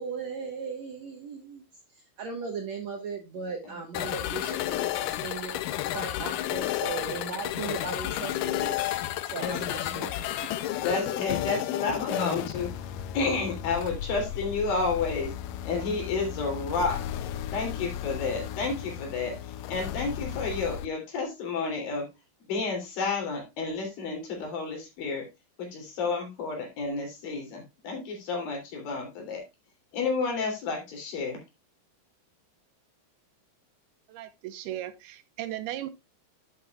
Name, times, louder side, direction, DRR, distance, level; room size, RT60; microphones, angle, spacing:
voice 1, 0.0-5.6 5.9-8.8 9.2-10.1, right 4 dB, 60° right, 3 dB, 2.0 m, -37 dB
sound 1, 3.9-20.9, left 12 dB, 85° left, 1.9 m, -33 dB
voice 2, 10.8-12.7 13.1-15.3 15.6-17.0 17.5-22.1 22.5-25.3 25.6-29.4 29.9-31.4, left 4 dB, 60° left, 2 dB, 4.7 m, -31 dB
voice 3, 34.1-35.9, right 13 dB, 80° right, 11 dB, 2.7 m, -36 dB
11.0 x 8.9 x 2.4 m, 0.22 s
omnidirectional pair, 4.7 m